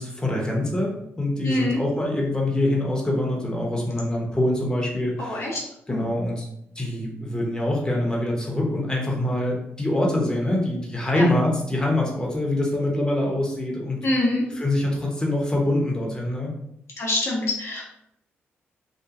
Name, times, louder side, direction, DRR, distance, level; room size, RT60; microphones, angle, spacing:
voice 1, 0.0-5.5 5.9-6.5 6.8-14.0 14.6-16.5, left 1 dB, 15° left, -2 dB, 0.9 m, -24 dB
voice 2, 1.4-1.8 5.2-5.6 5.9-6.1 11.1-11.2 14.0-14.4 17.0-17.8, left 2 dB, 60° left, -3 dB, 0.8 m, -25 dB
2.8 x 2.3 x 2.4 m, 0.77 s
supercardioid pair, 50°, 5 cm